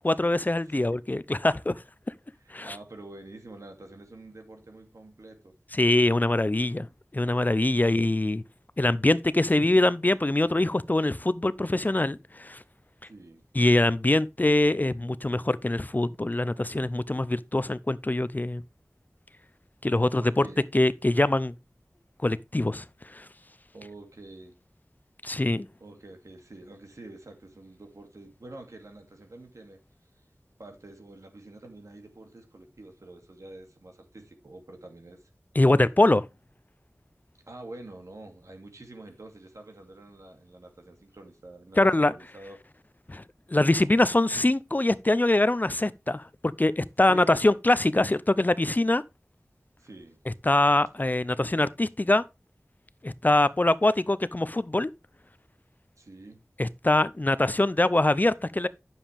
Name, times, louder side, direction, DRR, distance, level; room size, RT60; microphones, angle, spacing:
voice 1, 0.0-1.7 2.5-2.8 5.7-6.9 7.1-8.4 8.8-12.6 13.5-18.6 19.8-20.4 20.7-21.5 22.2-22.8 23.1-23.2 25.2-25.7 35.6-36.3 41.8-42.1 43.1-43.2 43.5-49.0 50.3-52.2 53.0-54.9 56.6-58.7, left 2 dB, 35° left, 0.5 m, -23 dB
voice 2, 0.6-1.0 2.4-5.5 13.0-13.4 20.2-20.6 23.7-24.6 25.8-29.8 30.6-35.3 37.5-42.6 47.0-47.4 49.8-50.2 56.0-56.4, right 2 dB, 80° right, 2.5 m, -47 dB
9.8 x 7.3 x 3.4 m
wide cardioid pair, 55°, 5 cm